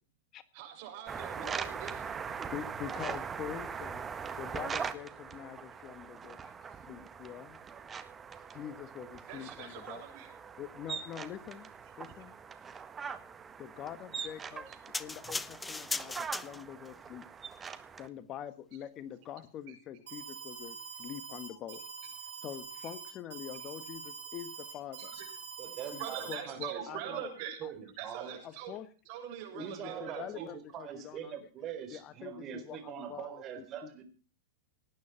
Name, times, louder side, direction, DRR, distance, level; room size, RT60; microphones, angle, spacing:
voice 1, 0.5-2.4 9.3-10.3 14.7-14.8 21.5-21.6 24.3-24.4 25.0-25.3 26.0-27.6 28.0-28.7 29.1-30.5, right 9 dB, 55° right, 5 dB, 7.3 m, -43 dB
sound 1, 1.1-18.1, right 6 dB, 20° right, 1.6 m, -42 dB
voice 2, 2.3-4.0 4.4-7.6 8.5-10.0 10.6-11.7 12.0-12.3 13.6-14.6 15.0-17.2 18.0-21.9 22.4-25.1 25.9-27.2 27.6-27.7 28.4-28.9 29.5-31.4 31.9-34.0, left 10 dB, 35° left, 12 dB, 1.6 m, -45 dB
sound 2, 14.9-16.9 17.6-17.7, left 3 dB, 10° left, 0.7 m, -38 dB
Alarm, 20.1-26.3, right 6 dB, 80° right, 6.0 m, -45 dB
voice 3, 25.6-27.3 27.6-28.4 29.6-34.0, right 9 dB, 35° right, 8 dB, 4.2 m, -43 dB
19.0 x 9.7 x 5.9 m, 0.39 s
hypercardioid pair, 120°, 0 cm